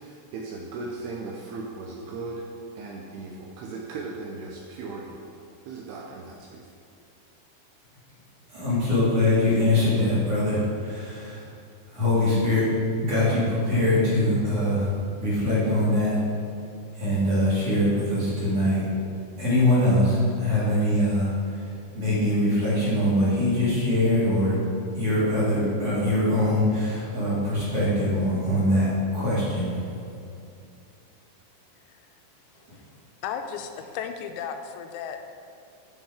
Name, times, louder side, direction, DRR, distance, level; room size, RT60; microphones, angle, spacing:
voice 1, 0.0-2.4 2.8-6.6, right 3 dB, 85° right, -1 dB, 2.4 m, -37 dB
voice 2, 8.5-11.4 11.9-12.7 13.0-14.9 15.2-16.2 17.0-18.8 19.4-21.6 21.9-24.6 24.9-29.7, left 1 dB, 40° right, -9 dB, 3.0 m, -23 dB
voice 3, 33.2-35.3, left 7 dB, 90° left, 6 dB, 3.0 m, -34 dB
8.1 x 7.1 x 4.9 m, 2.5 s
omnidirectional pair, 5.2 m